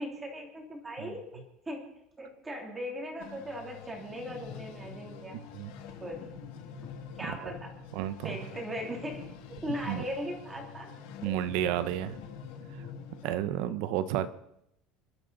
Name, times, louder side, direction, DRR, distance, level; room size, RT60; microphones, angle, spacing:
voice 1, 0.0-1.9 2.2-5.4 6.0-6.3 7.2-7.7 8.2-9.3 9.6-10.9 13.2-13.4, equal, 10° right, 1 dB, 2.9 m, -38 dB
sound 1, 3.2-13.2, left 6 dB, 75° left, 2.3 m, -46 dB
voice 2, 5.3-5.7 7.4-7.5 7.9-8.4 9.9-10.0 11.2-12.2 13.2-14.3, right 11 dB, 60° right, 13 dB, 0.9 m, -31 dB
28.5 x 12.0 x 4.1 m, 0.79 s
cardioid pair, 180°, 0 cm